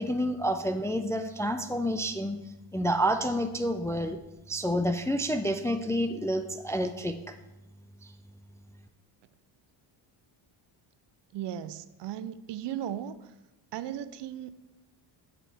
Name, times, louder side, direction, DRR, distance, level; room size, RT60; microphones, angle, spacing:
voice 1, 0.0-2.4 2.7-4.2 4.5-7.3, equal, 5° left, 7 dB, 0.3 m, -29 dB
voice 2, 11.3-13.3 13.7-14.5, right 10 dB, 60° right, 14 dB, 0.6 m, -36 dB
7.5 x 6.2 x 3.4 m, 0.96 s
supercardioid pair, 75°, 49 cm